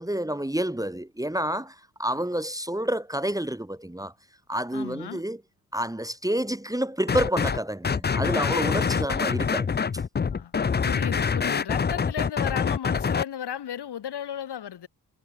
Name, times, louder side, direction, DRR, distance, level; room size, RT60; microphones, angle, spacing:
voice 1, 0.0-4.1 4.5-5.4 5.7-9.7, right 1 dB, 10° right, 2.0 m, -29 dB
voice 2, 4.7-5.2 9.0-9.4 10.3-14.9, left 9 dB, 60° left, 3.6 m, -35 dB
sound 1, 7.1-7.6 7.8-13.2, left 6 dB, 20° left, 0.7 m, -25 dB
hypercardioid pair, 45°, 45 cm